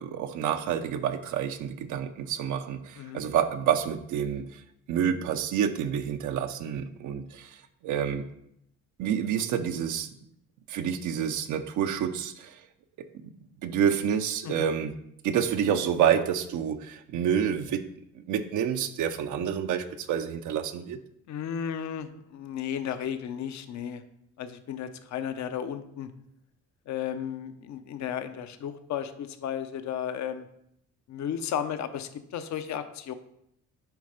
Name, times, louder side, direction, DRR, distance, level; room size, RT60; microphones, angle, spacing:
voice 1, 0.0-4.6 4.9-7.6 7.8-8.2 9.0-10.1 10.7-12.6 13.6-15.0 15.2-17.9 18.1-21.0, right 8 dB, 80° right, 8 dB, 0.6 m, -28 dB
voice 2, 21.3-24.0 24.4-26.1 26.9-30.5 31.1-33.1, left 9 dB, 65° left, 10 dB, 0.7 m, -34 dB
8.1 x 3.2 x 5.1 m, 0.75 s
cardioid pair, 90°, 30 cm